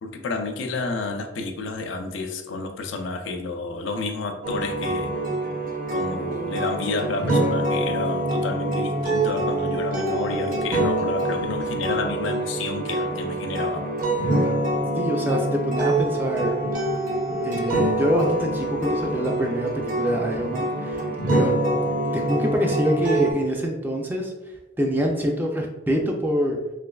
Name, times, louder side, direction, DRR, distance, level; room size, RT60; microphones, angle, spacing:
voice 1, 0.0-5.1 5.9-13.9 21.3-21.5, left 3 dB, 80° left, 5 dB, 0.4 m, -30 dB
sound 1, 4.4-23.3, right 1 dB, 45° right, 0.7 m, -25 dB
voice 2, 15.0-16.6 17.4-21.6 22.1-24.3 24.8-26.6, equal, 10° right, 0 dB, 0.3 m, -25 dB
3.2 x 2.9 x 2.3 m, 1.0 s
head